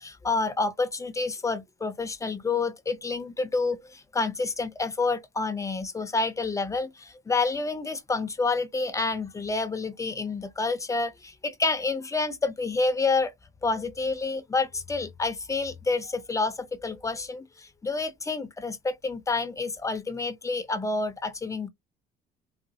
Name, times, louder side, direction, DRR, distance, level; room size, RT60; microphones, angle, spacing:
voice 1, 0.0-13.3 13.6-21.7, left 3 dB, 20° left, 0.6 m, -28 dB
4.0 x 2.0 x 2.7 m
cardioid pair, 110°, 17 cm